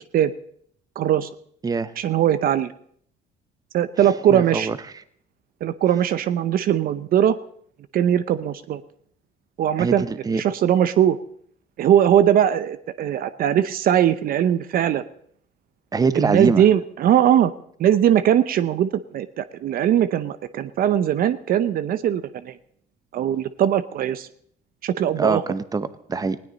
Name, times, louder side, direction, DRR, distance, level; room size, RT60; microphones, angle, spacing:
voice 1, 1.0-1.3 2.0-2.7 3.7-4.7 5.6-7.4 7.9-8.8 9.6-10.0 10.4-11.2 11.8-15.0 16.1-17.5 17.8-22.6 23.1-24.3 24.8-25.4, right 10 dB, 60° right, 14 dB, 0.7 m, -20 dB
voice 2, 4.0-4.8 9.8-10.4 15.9-16.6 25.2-26.4, right 4 dB, 20° right, 13 dB, 0.9 m, -24 dB
19.5 x 17.0 x 4.1 m, 0.65 s
cardioid pair, 110°, 17 cm